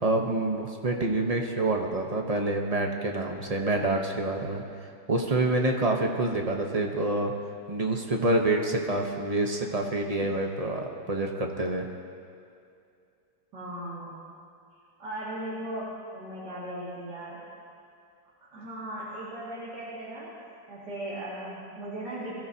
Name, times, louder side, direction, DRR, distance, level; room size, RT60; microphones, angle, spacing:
voice 1, 0.0-4.6 5.1-7.3 7.7-11.9, right 2 dB, 30° right, 2 dB, 0.7 m, -27 dB
voice 2, 13.5-14.2 15.0-17.4 18.5-20.3 20.7-22.4, right 1 dB, 65° right, -10 dB, 2.9 m, -37 dB
22.0 x 14.0 x 2.8 m, 2.4 s
omnidirectional pair, 2.0 m